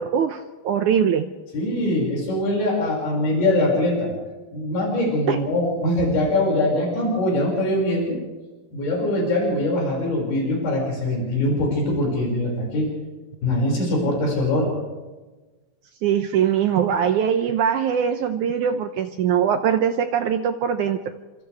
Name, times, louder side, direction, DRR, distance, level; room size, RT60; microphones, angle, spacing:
voice 1, 0.0-1.3 5.3-5.4 16.0-21.0, right 8 dB, 75° right, 8 dB, 1.8 m, -22 dB
voice 2, 1.5-4.1 4.5-8.2 8.7-12.9 13.4-14.7, left 1 dB, 85° left, -2 dB, 8.0 m, -22 dB
29.5 x 26.0 x 3.5 m, 1.2 s
omnidirectional pair, 4.4 m